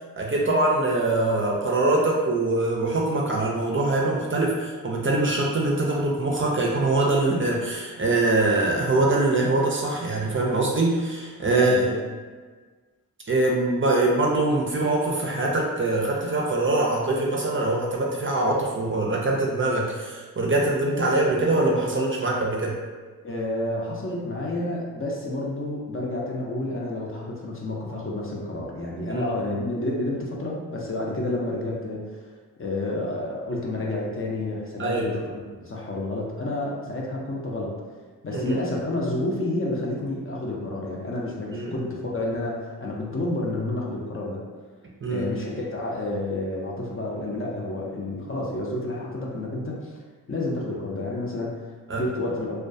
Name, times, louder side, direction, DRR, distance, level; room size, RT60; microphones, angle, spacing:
voice 1, 0.2-11.8 13.3-22.8 29.1-29.3 34.8-35.1 38.3-38.6 41.5-41.8 45.0-45.3 51.9-52.0, right 2 dB, 35° right, -2 dB, 0.4 m, -23 dB
voice 2, 11.5-12.0 23.2-32.2 32.6-37.8 38.2-44.4 45.1-49.9 50.3-51.7 52.0-52.6, left 2 dB, 35° left, -3 dB, 0.5 m, -30 dB
2.2 x 2.2 x 2.6 m, 1.4 s
cardioid pair, 55°, 36 cm